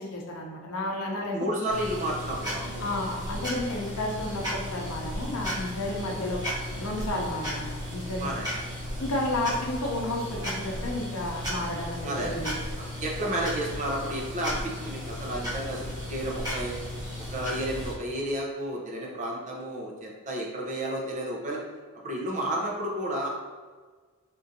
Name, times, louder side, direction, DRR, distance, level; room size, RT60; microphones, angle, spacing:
voice 1, 0.0-1.7 2.8-6.4 6.7-8.3 9.0-12.5, left 1 dB, 85° left, 0 dB, 0.6 m, -32 dB
voice 2, 1.3-2.9 8.2-8.5 9.5-9.6 12.0-12.4 12.8-15.8 16.1-16.7 17.3-21.6 22.0-23.3, right 1 dB, 35° right, -2 dB, 0.6 m, -31 dB
sound 1, 1.7-18.0, equal, 20° right, 1.0 m, -35 dB
3.7 x 2.5 x 2.6 m, 1.5 s
head